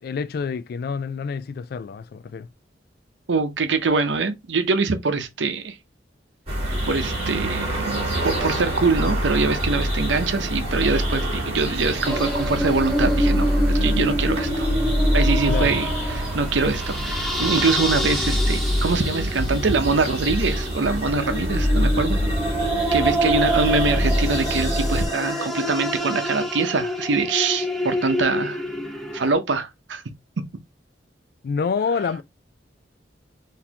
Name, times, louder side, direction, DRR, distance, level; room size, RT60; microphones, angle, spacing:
voice 1, 0.0-2.5 15.5-15.8 31.4-32.2, left 5 dB, 55° left, 0.3 m, -27 dB
voice 2, 3.3-5.8 6.9-7.7 8.2-14.7 15.1-22.2 22.9-28.6 29.1-30.0, right 4 dB, 85° right, 0.7 m, -24 dB
sound 1, 6.5-25.1, equal, 35° right, 1.7 m, -25 dB
sound 2, 12.0-29.3, equal, ahead, 1.1 m, -27 dB
sound 3, 16.2-25.5, left 2 dB, 30° left, 1.7 m, -38 dB
4.1 x 2.7 x 2.8 m
head